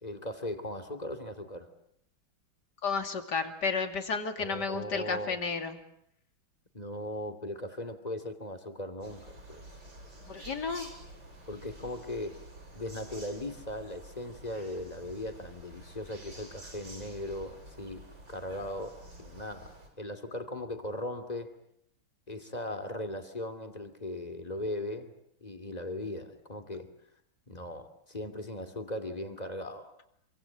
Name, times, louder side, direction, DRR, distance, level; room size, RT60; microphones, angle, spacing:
voice 1, 0.0-1.7 4.4-5.4 6.7-9.7 11.5-12.4 12.7-21.5 22.3-25.1 25.4-26.9 27.5-29.9, left 1 dB, 20° left, 7 dB, 2.8 m, -38 dB
voice 2, 2.8-5.8 10.3-10.9, left 5 dB, 55° left, 7 dB, 3.2 m, -32 dB
sound 1, 9.0-19.9, right 1 dB, 70° right, 7.8 m, -50 dB
27.5 x 25.0 x 8.7 m, 0.74 s
omnidirectional pair, 2.1 m